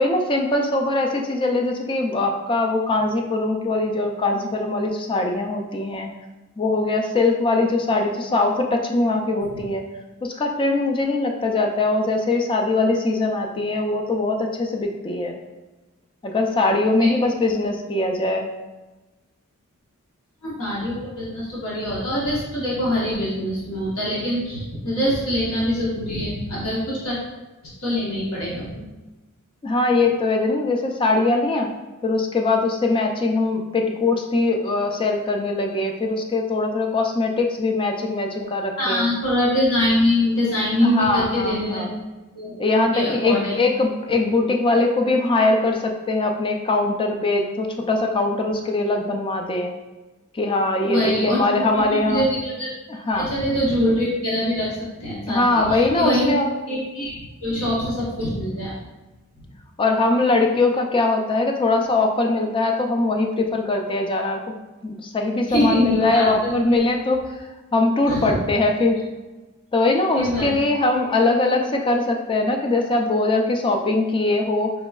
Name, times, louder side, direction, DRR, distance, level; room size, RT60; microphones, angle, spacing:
voice 1, 0.0-6.1 6.6-9.8 10.2-15.3 16.2-18.5 29.6-31.7 32.0-39.0 40.8-41.9 42.6-49.7 50.3-52.2 52.9-53.3 55.3-56.4 59.8-64.4 64.8-69.0 69.7-74.7, left 2 dB, 25° left, 2 dB, 0.4 m, -21 dB
voice 2, 20.4-27.2 27.8-28.8 38.8-41.9 42.3-43.6 50.8-52.7 53.1-58.7 59.4-59.5 65.5-66.5 68.1-68.4 70.1-70.5, left 1 dB, 75° left, -6 dB, 1.0 m, -24 dB
4.3 x 2.9 x 2.3 m, 1.1 s
head